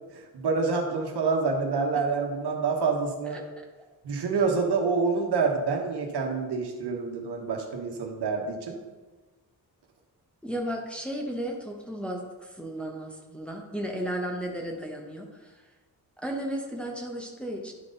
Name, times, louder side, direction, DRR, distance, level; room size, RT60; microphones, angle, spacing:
voice 1, 0.1-3.4 4.0-8.8, right 4 dB, 80° right, 1 dB, 1.3 m, -27 dB
voice 2, 10.4-15.5 16.2-17.7, right 1 dB, 5° left, 0 dB, 0.9 m, -34 dB
10.5 x 4.0 x 3.9 m, 1.2 s
wide cardioid pair, 130°, 39 cm